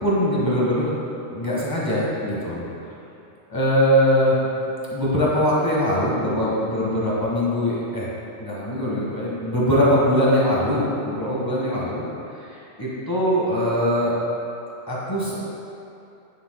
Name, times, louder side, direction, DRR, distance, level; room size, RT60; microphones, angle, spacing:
voice 1, 0.0-0.9 1.3-2.6 3.5-4.4 4.9-8.1 8.4-12.0 12.8-14.1 14.9-15.4, equal, 20° left, -7 dB, 1.6 m, -21 dB
9.3 x 8.0 x 2.3 m, 2.7 s
omnidirectional pair, 1.2 m